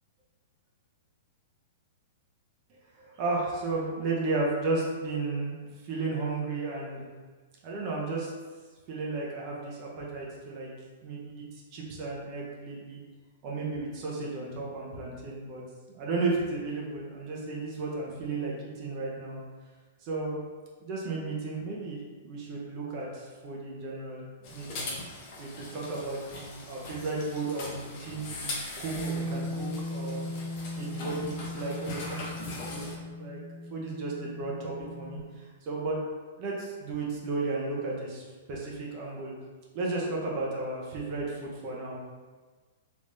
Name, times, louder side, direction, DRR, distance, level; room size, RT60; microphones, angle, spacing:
voice 1, 3.0-5.5 5.8-7.1 7.6-8.3 8.9-10.7 11.0-13.0 13.4-15.6 15.9-19.4 20.0-20.4 20.8-24.2 24.5-25.0 25.4-30.3 30.8-33.4 33.7-36.0 36.4-39.3 39.7-42.0, right 3 dB, 40° right, -3 dB, 0.7 m, -34 dB
sound 1, 24.4-33.0, left 2 dB, 45° left, 0.7 m, -41 dB
Bass guitar, 29.0-35.2, left 1 dB, 5° left, 0.8 m, -38 dB
3.5 x 3.1 x 2.6 m, 1.4 s
figure-of-eight pair, 105°, 0 cm